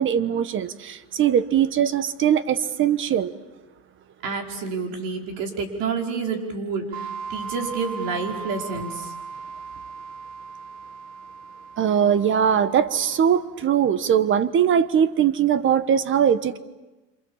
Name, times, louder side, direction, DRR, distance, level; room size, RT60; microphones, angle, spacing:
voice 1, 0.0-3.3 11.8-16.6, right 8 dB, 30° right, 14 dB, 1.3 m, -21 dB
voice 2, 4.2-9.1, right 4 dB, 65° right, 2 dB, 5.2 m, -29 dB
sound 1, 6.9-13.4, right 5 dB, 90° right, 1.3 m, -38 dB
27.5 x 27.5 x 7.3 m, 1.1 s
supercardioid pair, 130°, 37 cm